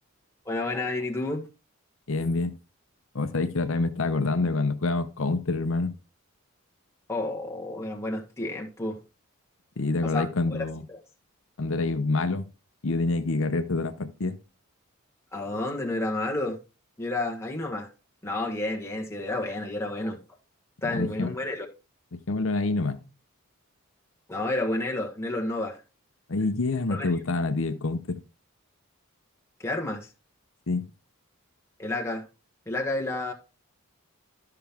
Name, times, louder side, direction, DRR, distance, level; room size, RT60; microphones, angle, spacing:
voice 1, 0.4-1.5 7.1-9.0 10.0-10.3 10.9-11.0 15.3-16.6 17.0-17.9 18.2-20.2 20.8-21.7 24.3-25.8 26.9-27.1 29.6-30.1 31.8-32.3 32.7-33.3, left 2 dB, 10° left, 1.3 m, -30 dB
voice 2, 2.1-2.5 3.1-5.9 9.8-10.8 11.6-12.5 12.8-14.4 20.9-21.3 22.1-23.0 26.3-28.2 30.7-30.9, left 3 dB, 65° left, 0.7 m, -27 dB
12.5 x 5.7 x 3.5 m
head